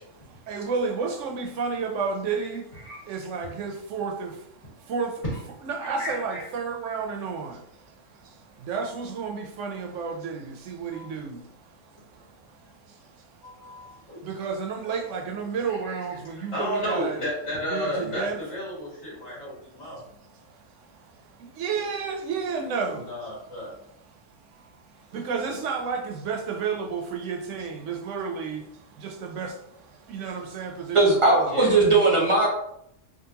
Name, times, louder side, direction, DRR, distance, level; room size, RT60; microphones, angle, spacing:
voice 1, 0.1-5.2 5.6-17.2 17.7-18.4 19.1-19.3 19.6-23.1 24.1-31.7, right 5 dB, 75° right, 0.9 m, -33 dB
voice 2, 5.8-6.4 10.9-11.1 13.4-14.2 15.9-16.0 16.3-20.0 22.9-23.7 25.1-25.2 31.5-31.8, equal, 65° left, 1.9 m, -33 dB
voice 3, 30.9-32.5, right 3 dB, 35° right, 0.6 m, -19 dB
3.7 x 2.4 x 2.8 m
omnidirectional pair, 1.3 m